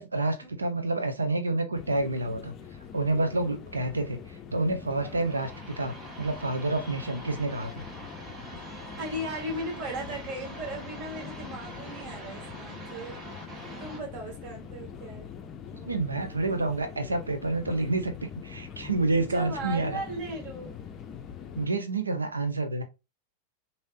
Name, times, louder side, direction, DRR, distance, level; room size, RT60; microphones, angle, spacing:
voice 1, 0.0-2.5 2.9-7.8 15.8-20.0 21.6-22.8, right 2 dB, 80° right, 0.6 m, -29 dB
sound 1, 1.7-21.7, left 7 dB, 30° left, 0.5 m, -44 dB
sound 2, 4.9-14.0, right 1 dB, 25° right, 1.1 m, -44 dB
voice 2, 8.7-13.2 13.8-15.3 19.1-20.8, right 1 dB, 50° right, 1.5 m, -37 dB
3.2 x 2.7 x 2.6 m
figure-of-eight pair, 90°, 0 cm